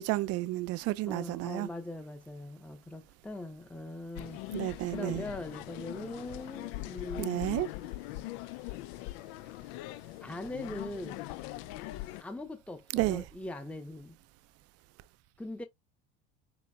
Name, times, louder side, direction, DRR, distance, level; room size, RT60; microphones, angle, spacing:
voice 1, 0.0-1.7 4.5-5.2 7.2-7.7 12.9-13.2, right 17 dB, 50° right, 0.5 m, -31 dB
voice 2, 1.0-7.5 10.2-11.3 12.2-14.2 15.4-15.6, left 2 dB, 5° left, 0.8 m, -41 dB
sound 1, 4.2-12.2, left 17 dB, 70° left, 0.5 m, -41 dB
6.9 x 3.0 x 2.3 m
hypercardioid pair, 85°, 30 cm